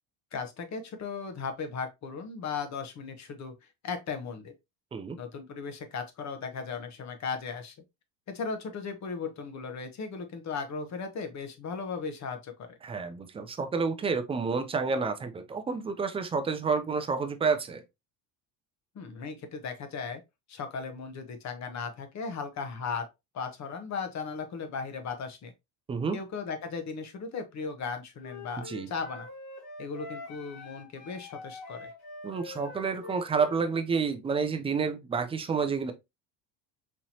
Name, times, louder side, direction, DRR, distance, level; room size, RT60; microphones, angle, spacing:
voice 1, 0.3-3.5 3.8-4.5 5.2-7.7 8.3-12.7 18.9-20.2 20.5-23.1 23.3-25.5 26.1-29.3 29.8-31.9, left 5 dB, 40° left, 0.9 m, -37 dB
voice 2, 12.8-17.8 25.9-26.2 28.7-28.9 32.2-35.9, right 5 dB, 15° right, 0.3 m, -29 dB
Wind instrument woodwind instrument, 28.2-33.7, left 3 dB, 85° left, 2.2 m, -45 dB
4.3 x 2.9 x 2.7 m
cardioid pair, 120°, 45 cm